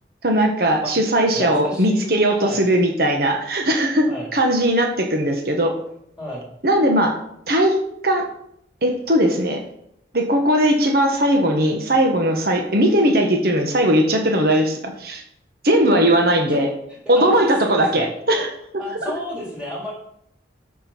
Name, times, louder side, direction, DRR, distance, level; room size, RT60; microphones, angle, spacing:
voice 1, 0.2-5.8 6.6-7.2 7.5-8.3 8.8-9.6 10.1-15.2 15.6-16.7 17.1-18.5 18.7-18.8, right 1 dB, 55° right, 3 dB, 1.5 m, -19 dB
voice 2, 1.3-2.1 2.4-2.6 4.1-4.3 6.2-6.5 16.2-16.6 16.9-17.3 17.6-18.1 18.8-19.9, equal, 5° right, -4 dB, 4.3 m, -33 dB
13.5 x 6.2 x 4.6 m, 0.75 s
head